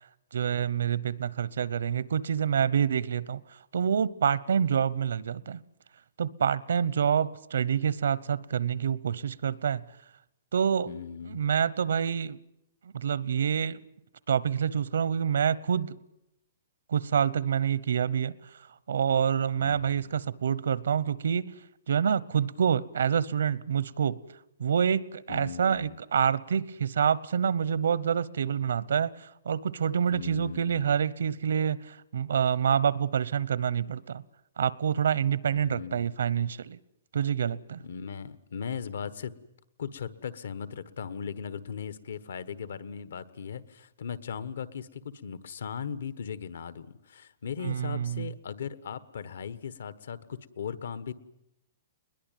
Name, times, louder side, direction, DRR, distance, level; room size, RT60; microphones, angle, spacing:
voice 1, 0.3-3.4 3.7-5.6 6.2-9.8 10.5-10.9 11.3-12.4 12.9-13.8 14.3-16.0 16.9-18.3 18.9-21.5 21.9-24.2 24.6-34.2 34.6-36.8 37.1-37.8 47.6-48.3, right 8 dB, 80° right, 20 dB, 0.9 m, -27 dB
voice 2, 10.9-11.4 19.6-20.1 25.3-26.0 30.1-30.9 35.5-36.0 37.8-39.3 39.8-51.1, left 7 dB, 70° left, 15 dB, 1.3 m, -38 dB
21.0 x 21.0 x 9.2 m, 0.83 s
hypercardioid pair, 180°, 0 cm